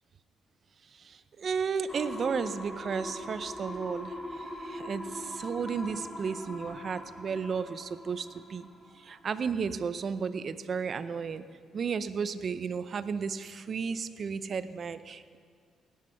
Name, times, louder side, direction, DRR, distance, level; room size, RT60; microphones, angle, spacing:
voice 1, 0.9-8.7 9.0-11.4 11.7-15.4, right 6 dB, 50° right, 13 dB, 0.6 m, -33 dB
sound 1, 1.9-9.5 9.9-10.0, left 1 dB, 10° left, 2.3 m, -41 dB
16.5 x 10.0 x 5.8 m, 2.1 s
cardioid pair, 90°, 0 cm